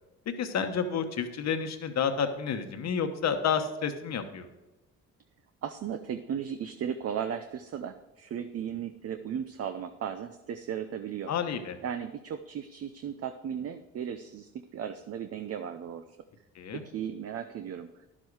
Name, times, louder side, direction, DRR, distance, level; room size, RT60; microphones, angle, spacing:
voice 1, 0.4-4.5 11.3-11.8 16.5-16.8, left 6 dB, 60° left, 7 dB, 1.2 m, -30 dB
voice 2, 5.6-11.3 11.8-16.0 16.7-17.9, right 8 dB, 55° right, 9 dB, 0.6 m, -36 dB
11.0 x 7.5 x 4.8 m, 1.1 s
cardioid pair, 90°, 30 cm